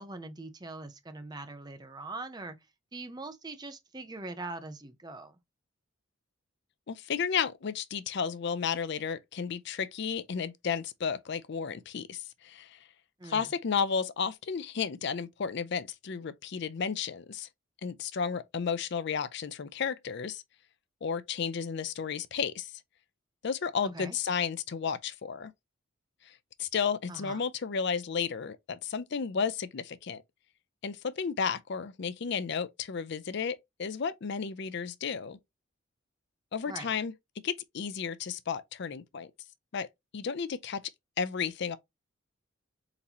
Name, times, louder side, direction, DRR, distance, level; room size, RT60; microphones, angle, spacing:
voice 1, 0.0-2.6 2.9-5.4 13.2-13.5 23.8-24.2 27.1-27.4 36.7-36.9, right 2 dB, 20° right, 0.7 m, -42 dB
voice 2, 6.9-12.8 13.2-17.5 17.8-20.4 21.0-22.7 23.4-25.5 26.3-30.2 30.8-35.4 36.5-37.1 37.4-39.3 39.7-39.9 40.1-40.8 41.2-41.8, left 6 dB, 55° left, 0.5 m, -33 dB
4.2 x 3.9 x 2.9 m
head